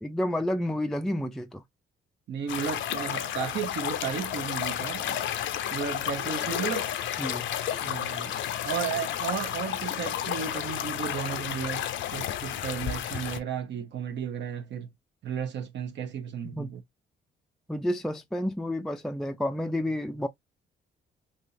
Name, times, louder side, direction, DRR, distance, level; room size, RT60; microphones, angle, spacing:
voice 1, 0.0-1.6 7.2-7.5 16.5-16.7 17.7-20.3, left 1 dB, ahead, 0.3 m, -30 dB
voice 2, 2.3-5.2 5.7-6.9 7.8-14.9 15.2-16.8, right 8 dB, 65° right, 0.7 m, -34 dB
sound 1, 2.5-13.4, left 10 dB, 75° left, 0.5 m, -32 dB
3.4 x 2.8 x 2.6 m
cardioid pair, 90°, 20 cm